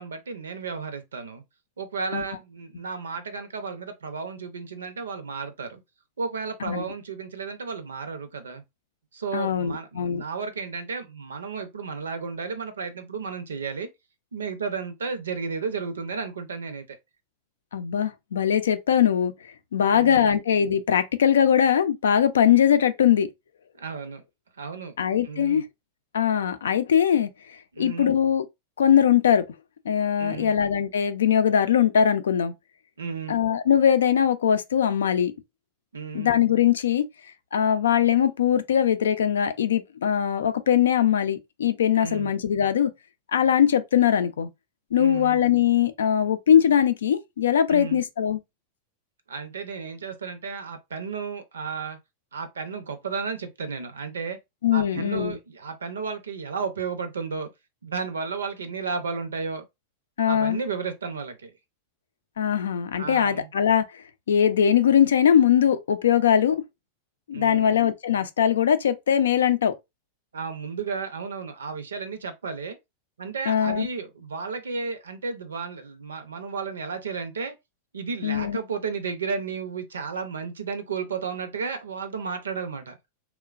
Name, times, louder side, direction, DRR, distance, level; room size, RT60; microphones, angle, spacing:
voice 1, 0.0-1.4 1.8-5.8 6.2-8.6 9.1-13.9 14.3-17.0 19.8-20.4 23.8-24.2 24.6-24.9 25.2-25.6 27.7-28.1 30.2-30.5 33.0-33.4 35.9-36.4 42.0-42.3 45.0-45.4 47.7-48.0 49.3-52.0 52.3-54.4 54.7-57.5 57.8-59.6 60.3-61.5 63.0-63.5 67.3-67.8 70.3-72.8 73.2-77.5 77.9-83.0, right 5 dB, 90° right, 0.6 m, -33 dB
voice 2, 9.3-10.2 17.7-19.3 19.7-23.3 25.0-25.6 26.1-27.3 27.8-28.5 28.8-29.5 29.9-32.5 33.3-35.3 36.1-37.1 37.5-42.9 43.3-44.5 44.9-48.4 54.6-55.4 60.2-60.6 62.4-66.6 67.3-69.7 73.5-73.9 78.2-78.6, left 9 dB, 80° left, 0.4 m, -21 dB
3.0 x 2.2 x 2.4 m
hypercardioid pair, 105°, 0 cm